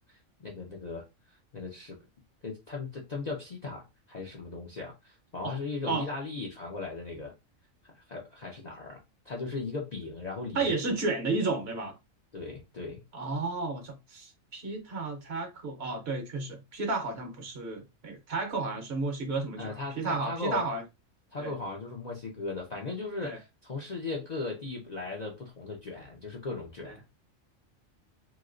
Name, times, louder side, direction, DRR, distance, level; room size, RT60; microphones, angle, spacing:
voice 1, 0.1-2.0 2.4-7.3 7.8-10.7 12.3-13.0 19.6-20.7 21.3-27.0, left 3 dB, 50° left, 0.5 m, -38 dB
voice 2, 10.5-11.9 13.1-20.8 21.4-21.5 23.2-23.4 26.8-26.9, right 3 dB, 55° right, 1.0 m, -32 dB
3.0 x 2.8 x 2.4 m
omnidirectional pair, 1.4 m